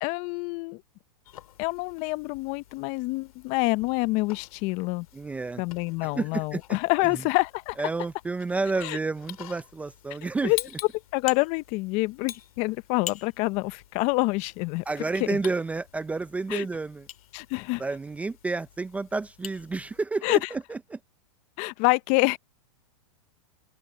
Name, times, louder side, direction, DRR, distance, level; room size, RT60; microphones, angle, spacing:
voice 1, 0.0-0.8 1.6-5.1 5.6-7.8 8.8-9.0 10.4-10.6 11.1-14.8 15.3-15.4 16.5-16.7 17.3-17.8 20.2-20.5 21.6-22.4, left 24 dB, 35° left, 0.6 m, -27 dB
sound 1, 1.3-20.0, left 11 dB, 70° left, 2.5 m, -46 dB
voice 2, 5.1-5.6 6.0-6.6 7.1-7.2 7.8-10.5 14.9-17.1 17.8-21.0, right 3 dB, 5° right, 0.5 m, -30 dB
open air
hypercardioid pair, 135°, 19 cm